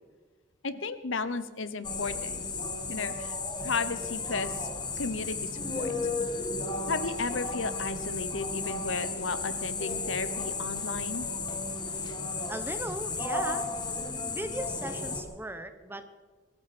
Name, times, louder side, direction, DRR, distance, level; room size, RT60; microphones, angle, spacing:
voice 1, 0.6-2.4 2.9-3.3 3.6-4.7 5.0-5.9 6.9-11.3, left 4 dB, 80° left, 13 dB, 1.1 m, -34 dB
sound 1, 1.8-15.2, left 3 dB, 20° left, 1.7 m, -34 dB
voice 2, 12.5-13.7 14.3-16.0, right 1 dB, 10° right, 9 dB, 1.0 m, -38 dB
23.5 x 14.0 x 4.4 m, 1.5 s
head